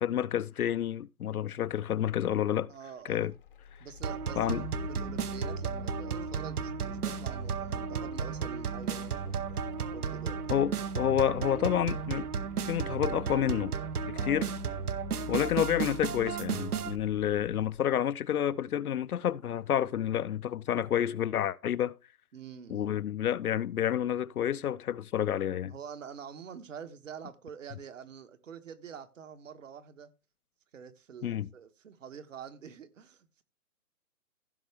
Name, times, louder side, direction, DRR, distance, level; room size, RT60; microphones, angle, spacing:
voice 1, 0.0-2.7 3.0-3.3 4.4-4.7 10.5-12.3 12.6-13.7 14.1-14.4 15.3-21.9 22.7-25.7 31.2-31.5, left 10 dB, 80° left, 0.7 m, -29 dB
voice 2, 2.7-3.3 3.8-9.6 9.9-10.5 14.1-14.5 22.3-22.9 25.7-30.1 30.7-33.4, right 7 dB, 60° right, 1.4 m, -46 dB
sound 1, 3.1-17.8, left 9 dB, 35° left, 0.7 m, -45 dB
sound 2, 4.0-17.0, right 7 dB, 80° right, 1.0 m, -34 dB
15.5 x 5.5 x 3.5 m
hypercardioid pair, 155°, 44 cm